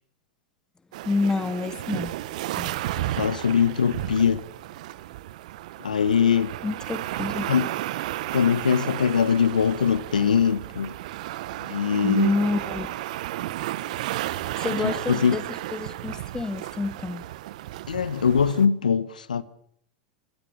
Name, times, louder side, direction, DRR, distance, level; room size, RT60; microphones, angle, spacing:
sound 1, 0.9-18.7, right 15 dB, 65° right, 1.1 m, -33 dB
voice 1, 1.0-2.1 2.6-2.7 6.6-7.5 12.0-12.9 14.6-15.4 15.7-17.2, left 3 dB, 15° left, 2.3 m, -28 dB
voice 2, 3.0-4.5 5.8-6.5 7.5-7.7 8.3-10.9 11.7-12.3 14.8-15.3 17.9-19.4, left 7 dB, 85° left, 1.2 m, -22 dB
26.5 x 20.5 x 6.9 m
hypercardioid pair, 85°, 4 cm